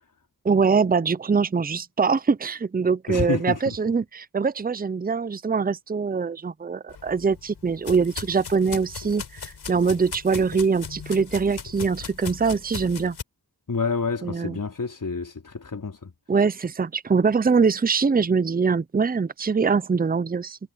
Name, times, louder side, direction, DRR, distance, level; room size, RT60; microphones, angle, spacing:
voice 1, 0.4-13.2 14.2-14.6 16.3-20.6, right 5 dB, 25° right, 0.6 m, -23 dB
voice 2, 3.1-3.8 13.7-16.1, left 4 dB, 55° left, 3.8 m, -28 dB
Steps of a Child in Grass, 6.9-13.2, left 6 dB, 85° left, 5.9 m, -38 dB
cardioid pair, 60°, 38 cm